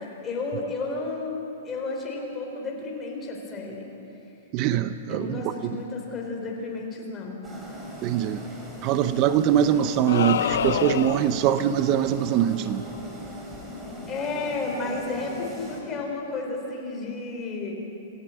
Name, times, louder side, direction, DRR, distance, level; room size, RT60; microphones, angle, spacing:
voice 1, 0.0-1.4 1.6-3.9 5.1-7.4 14.1-17.7, left 3 dB, 15° left, -1 dB, 3.6 m, -32 dB
voice 2, 4.5-5.7 8.0-8.4 8.8-12.8, right 10 dB, 30° right, 12 dB, 0.6 m, -23 dB
sound 1, 7.4-15.8, equal, 10° right, 3.4 m, -39 dB
sound 2, 10.1-11.4, left 9 dB, 75° left, 0.6 m, -26 dB
27.0 x 16.0 x 8.3 m, 2.9 s
hypercardioid pair, 170°, 0 cm